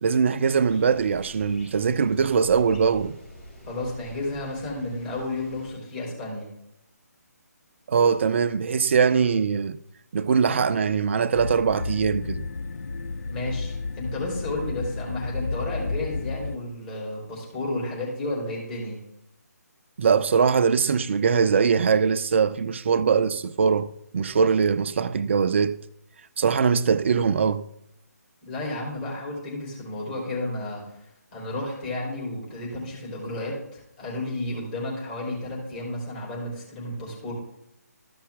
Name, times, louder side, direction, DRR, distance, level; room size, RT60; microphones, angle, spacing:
voice 1, 0.0-3.2 7.9-9.8 10.1-12.5 20.0-25.8 26.4-27.7, right 6 dB, 45° right, 0.5 m, -22 dB
sound 1, 0.6-5.7, left 1 dB, 45° left, 3.9 m, -46 dB
voice 2, 3.7-6.5 13.3-19.0 28.4-31.0 31.3-37.3, left 2 dB, 30° left, 3.8 m, -32 dB
sound 2, 11.3-16.6, left 3 dB, 70° left, 0.5 m, -32 dB
13.5 x 5.7 x 3.5 m
figure-of-eight pair, 150°, 9 cm